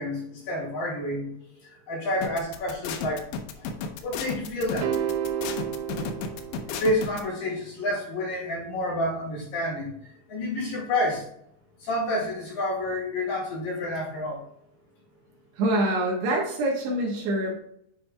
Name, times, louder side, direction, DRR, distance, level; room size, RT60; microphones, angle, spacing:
voice 1, 0.0-1.3 1.6-3.2 3.6-3.7 4.0-5.1 6.7-11.3 11.8-14.4, left 1 dB, 55° left, -5 dB, 3.6 m, -29 dB
sound 1, 2.2-7.2, left 5 dB, 80° left, 2.6 m, -33 dB
sound 2, 4.8-7.2, right 9 dB, 90° right, 3.1 m, -31 dB
voice 2, 15.6-17.6, right 1 dB, 70° right, -1 dB, 3.2 m, -25 dB
9.8 x 5.0 x 2.3 m, 0.74 s
omnidirectional pair, 5.3 m